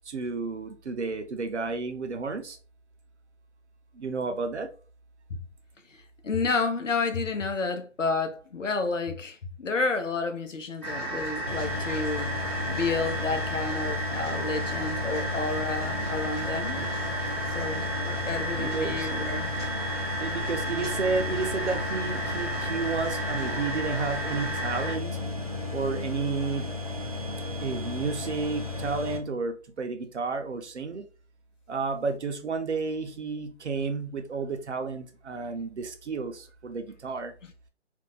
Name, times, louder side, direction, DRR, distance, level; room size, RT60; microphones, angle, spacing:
voice 1, 0.1-2.6 4.0-4.7 18.6-19.1 20.2-25.2 25.7-26.7 27.6-31.0 31.7-37.3, right 4 dB, 65° right, 0.7 m, -31 dB
voice 2, 5.9-12.4 12.7-16.8 17.5-19.6, left 4 dB, 85° left, 0.8 m, -30 dB
sound 1, 10.8-25.0, right 1 dB, 20° left, 0.6 m, -33 dB
sound 2, 11.5-29.2, left 3 dB, 35° right, 0.4 m, -34 dB
2.6 x 2.2 x 3.8 m
figure-of-eight pair, 155°, 37 cm